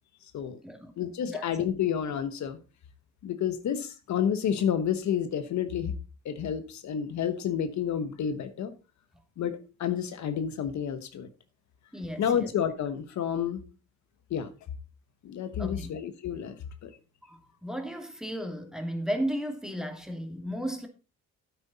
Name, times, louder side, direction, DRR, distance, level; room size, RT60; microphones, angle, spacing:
voice 1, 1.0-2.6 3.2-5.9 6.2-8.7 9.4-11.3 12.2-13.6 14.3-14.5 15.2-16.6 16.8-16.9, left 8 dB, 65° left, 1.2 m, -30 dB
voice 2, 11.9-12.5 15.6-15.9 17.2-20.9, equal, ahead, 2.4 m, -34 dB
9.5 x 8.6 x 4.1 m
cardioid pair, 90°, 30 cm